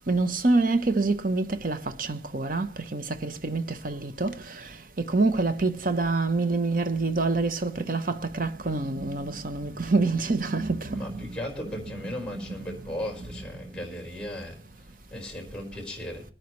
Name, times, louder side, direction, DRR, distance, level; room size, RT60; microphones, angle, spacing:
voice 1, 0.1-11.4 12.3-12.8, right 3 dB, 45° right, 1.0 m, -27 dB
voice 2, 10.9-14.6 15.1-16.2, left 1 dB, 5° left, 4.8 m, -36 dB
23.5 x 9.6 x 3.2 m
head